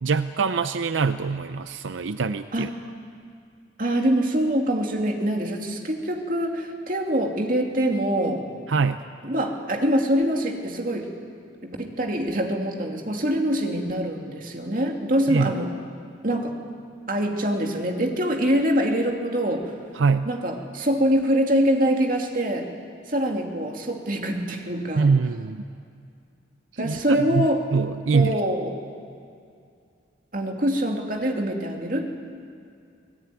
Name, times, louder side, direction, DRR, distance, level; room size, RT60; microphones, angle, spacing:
voice 1, 0.0-2.7 8.7-9.0 15.3-15.5 19.9-20.3 25.0-25.6 26.8-28.4, right 4 dB, 90° right, 11 dB, 0.6 m, -24 dB
voice 2, 3.8-8.5 9.2-11.1 11.6-15.7 16.2-16.6 17.1-19.7 20.3-22.7 23.1-25.1 26.8-27.6 28.1-28.7 30.3-32.0, equal, 45° right, 2 dB, 2.6 m, -24 dB
24.0 x 18.5 x 9.6 m, 2.3 s
head